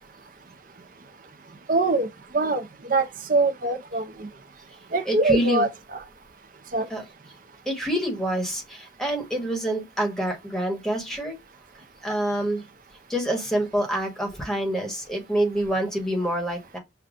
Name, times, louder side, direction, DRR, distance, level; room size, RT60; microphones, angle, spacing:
voice 1, 1.7-2.1 2.3-4.3 4.9-6.0 6.7-6.9, right 2 dB, 45° right, 0.6 m, -23 dB
voice 2, 5.1-5.6 6.9-7.0 7.7-11.4 12.0-12.6 13.1-16.8, right 1 dB, 5° left, 1.2 m, -27 dB
6.8 x 2.3 x 2.4 m
head